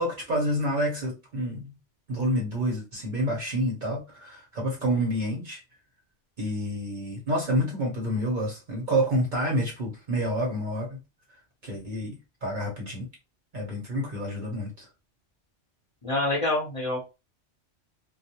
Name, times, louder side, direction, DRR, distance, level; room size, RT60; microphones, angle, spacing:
voice 1, 0.0-1.7 2.1-5.6 6.4-11.0 11.6-13.1 13.5-14.9, equal, 45° right, 0.8 m, -28 dB
voice 2, 16.0-17.2, left 2 dB, 30° left, 0.8 m, -27 dB
2.3 x 2.1 x 2.8 m
omnidirectional pair, 1.2 m